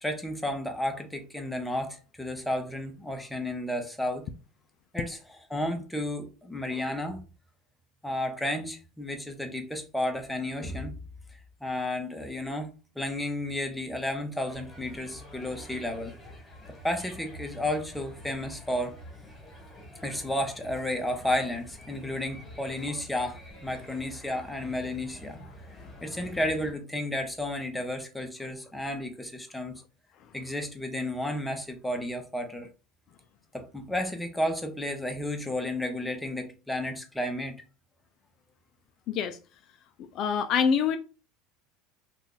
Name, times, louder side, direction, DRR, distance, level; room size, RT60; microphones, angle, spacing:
voice 1, 0.0-4.2 4.9-7.2 8.0-10.9 11.3-12.7 13.0-16.1 16.8-18.9 20.0-25.4 26.0-29.8 30.3-32.7 33.5-37.6, left 1 dB, 5° left, 0.7 m, -32 dB
sound 1, 14.5-26.7, equal, 20° left, 1.4 m, -47 dB
voice 2, 39.1-39.4 40.1-41.0, left 7 dB, 50° left, 0.3 m, -25 dB
2.6 x 2.4 x 3.7 m
supercardioid pair, 120°, 0 cm